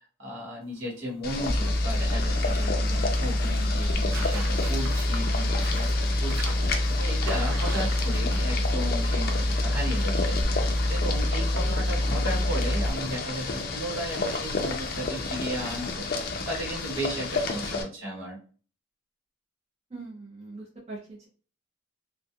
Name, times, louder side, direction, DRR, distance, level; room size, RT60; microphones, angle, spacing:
voice 1, 0.2-18.4, equal, 65° right, -3 dB, 1.0 m, -35 dB
sound 1, 0.6-12.8, right 5 dB, 85° right, 0.4 m, -46 dB
Boiling, 1.2-17.8, left 3 dB, 45° left, 0.4 m, -32 dB
sound 2, 1.5-12.9, left 1 dB, 10° right, 1.1 m, -26 dB
voice 2, 19.9-21.3, right 3 dB, 30° right, -5 dB, 0.5 m, -42 dB
2.3 x 2.1 x 2.7 m, 0.40 s
head